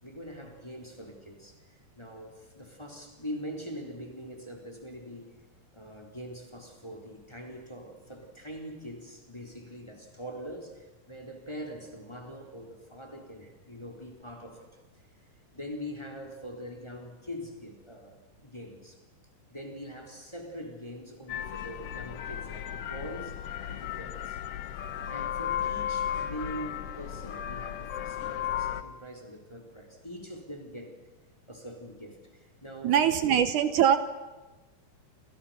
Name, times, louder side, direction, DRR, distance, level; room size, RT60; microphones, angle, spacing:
voice 1, 0.0-5.4 5.7-14.7 15.0-15.1 15.5-19.0 19.5-23.4 23.7-24.4 24.7-24.8 25.1-31.0 31.5-33.4, equal, 10° left, 2 dB, 3.8 m, -43 dB
sound 1, 21.3-28.8, left 10 dB, 65° left, 1.6 m, -35 dB
voice 2, 32.8-34.0, right 9 dB, 75° right, 10 dB, 2.5 m, -22 dB
29.5 x 29.0 x 5.9 m, 1.1 s
omnidirectional pair, 3.7 m